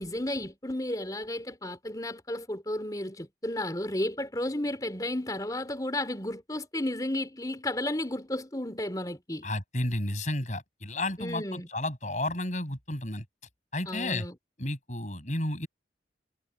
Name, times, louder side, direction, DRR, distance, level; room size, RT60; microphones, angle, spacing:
voice 1, 0.0-9.5 11.2-11.7 13.9-14.3, left 1 dB, 20° left, 3.5 m, -33 dB
voice 2, 9.4-13.2 13.7-14.3 14.6-15.7, left 1 dB, 40° left, 6.7 m, -32 dB
head